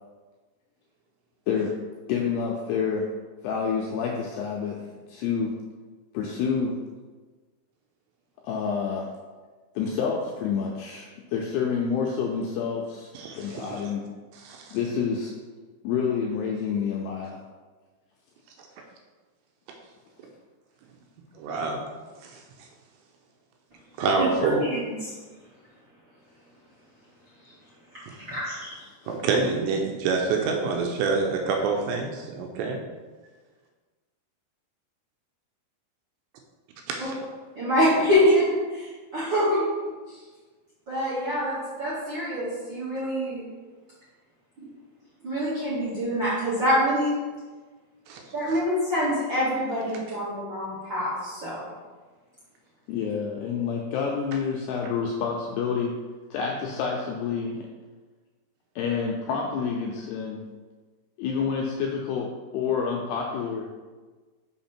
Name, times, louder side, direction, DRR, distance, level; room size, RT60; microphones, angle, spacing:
voice 1, 2.1-3.1 3.4-4.8 5.1-5.5 6.1-6.8 8.4-9.0 9.8-13.1 13.3-14.0 14.7-15.3 15.8-17.4 29.0-29.2 52.9-55.9 56.3-57.7 58.8-60.4 61.2-62.3 62.5-63.7, left 6 dB, 80° left, -1 dB, 2.4 m, -28 dB
voice 2, 13.1-13.8 14.3-14.8 21.4-21.9 22.2-22.4 24.0-24.7 29.1-32.8 36.9-37.2 48.1-48.2, right 4 dB, 80° right, 2 dB, 2.8 m, -27 dB
voice 3, 24.2-24.7 25.0-25.1 28.3-28.7 37.0-37.1 37.5-38.9 39.1-39.7 40.9-43.4 45.2-47.1 48.3-51.6, equal, 45° right, -9 dB, 1.5 m, -25 dB
6.3 x 5.8 x 4.4 m, 1.4 s
omnidirectional pair, 5.4 m